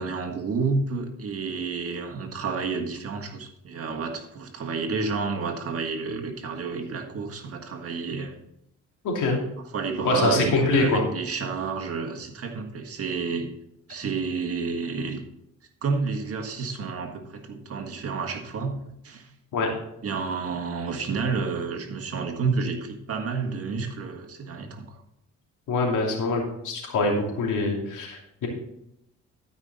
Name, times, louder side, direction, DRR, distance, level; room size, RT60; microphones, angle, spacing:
voice 1, 0.0-8.3 9.7-13.5 13.9-15.2 15.8-19.3 20.0-25.0, right 4 dB, 50° right, 4 dB, 1.6 m, -30 dB
voice 2, 9.0-9.4 10.0-11.0 19.5-19.7 25.7-28.5, left 3 dB, 80° left, 0 dB, 2.8 m, -24 dB
12.5 x 5.5 x 4.1 m, 0.79 s
cardioid pair, 90°, 30 cm